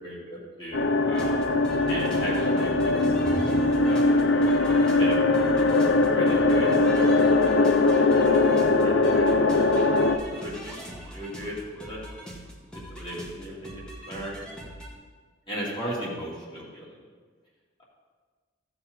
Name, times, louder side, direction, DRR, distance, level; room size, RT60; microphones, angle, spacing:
voice 1, 0.0-1.6 1.9-2.9 3.8-4.3 5.0-5.4 6.1-8.4 8.8-10.7 11.1-12.0 12.9-14.5 15.5-17.0, equal, 25° left, -6 dB, 3.1 m, -37 dB
sound 1, 0.7-10.2, left 2 dB, 65° left, 0.7 m, -21 dB
sound 2, 1.1-14.9, equal, 5° left, 1.8 m, -41 dB
15.5 x 6.9 x 4.1 m, 1.5 s
head